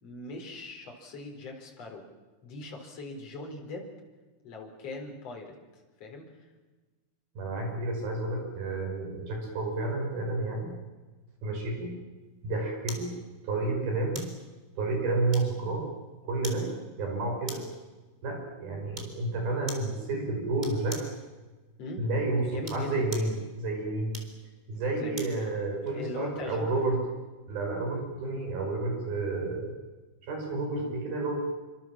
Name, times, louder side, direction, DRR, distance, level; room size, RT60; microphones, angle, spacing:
voice 1, 0.0-2.0 2.4-3.9 4.4-5.5 6.0-6.3 16.5-16.7 21.8-22.1 22.4-23.0 24.9-25.3 25.9-26.7 30.8-30.9, left 2 dB, 40° left, 1 dB, 5.1 m, -40 dB
voice 2, 7.4-10.7 11.4-11.9 12.4-13.1 13.4-14.3 14.8-15.9 16.2-16.7 17.0-17.6 18.2-21.1 22.0-24.2 24.7-27.0 27.5-29.7 30.2-31.4, right 2 dB, 70° right, 2 dB, 7.1 m, -30 dB
sound 1, 12.9-13.1 14.1-14.4 15.3-15.8 16.4-16.7 17.5-17.8 18.9-19.2 19.7-19.9 20.6-21.2 22.5-23.4 24.1-25.4 25.9-26.0, right 1 dB, 10° right, 3.5 m, -42 dB
27.5 x 25.0 x 7.5 m, 1.3 s
omnidirectional pair, 4.5 m